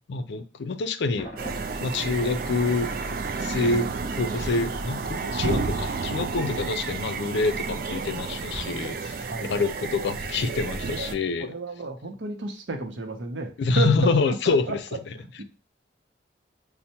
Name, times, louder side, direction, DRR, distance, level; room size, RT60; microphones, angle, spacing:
voice 1, 0.1-1.3 1.8-2.9 3.4-11.5 13.6-14.8, left 3 dB, 75° left, 0.4 m, -26 dB
Thunder, 1.2-4.2, equal, 40° left, 1.2 m, -43 dB
sound 1, 1.4-11.2, right 4 dB, 50° right, 0.3 m, -31 dB
Explosion, 8.5-10.3, right 1 dB, 5° right, 1.0 m, -46 dB
voice 2, 9.2-9.7 11.4-14.8 15.1-15.4, right 2 dB, 85° right, 0.7 m, -33 dB
5.4 x 2.1 x 2.8 m
head